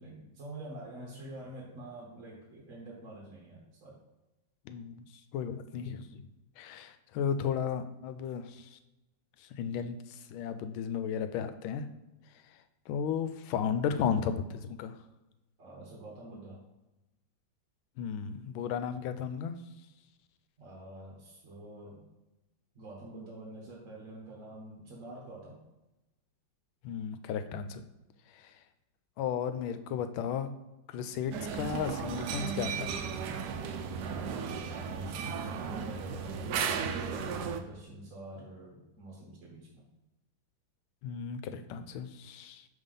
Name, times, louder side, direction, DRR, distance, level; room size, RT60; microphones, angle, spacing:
voice 1, 0.0-4.0 15.6-16.6 20.6-22.1 22.7-25.6 34.7-39.9, right 1 dB, 45° right, -3 dB, 1.3 m, -47 dB
voice 2, 4.7-5.0 5.3-6.2 6.6-8.8 9.4-11.9 12.9-15.0 18.0-19.5 26.8-27.8 28.3-28.6 29.2-30.5 30.9-32.9 41.0-42.7, left 7 dB, 85° left, 10 dB, 1.4 m, -34 dB
sound 1, 31.3-37.6, right 6 dB, 70° right, 1.0 m, -35 dB
5.5 x 3.5 x 5.3 m, 1.0 s
omnidirectional pair, 2.2 m